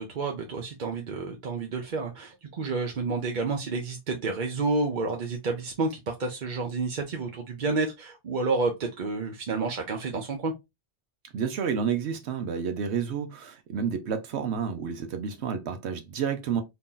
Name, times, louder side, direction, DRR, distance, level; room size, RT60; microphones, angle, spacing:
voice 1, 0.0-10.5, right 3 dB, 50° right, 0.7 m, -30 dB
voice 2, 11.3-16.6, right 7 dB, 80° right, 0.9 m, -30 dB
2.9 x 2.7 x 3.6 m
omnidirectional pair, 1.1 m